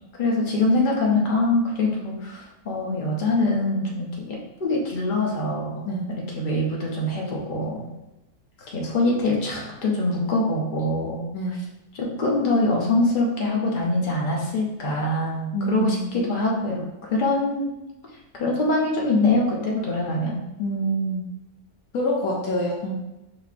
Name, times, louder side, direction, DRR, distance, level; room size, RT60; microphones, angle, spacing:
voice 1, 0.2-7.9 8.7-11.3 11.9-16.8 17.1-17.7 18.4-20.4, left 2 dB, 40° left, -2 dB, 0.8 m, -24 dB
voice 2, 15.5-16.1 20.6-21.3 21.9-22.9, right 1 dB, 75° left, -3 dB, 1.2 m, -26 dB
5.1 x 2.8 x 2.4 m, 0.95 s
omnidirectional pair, 1.6 m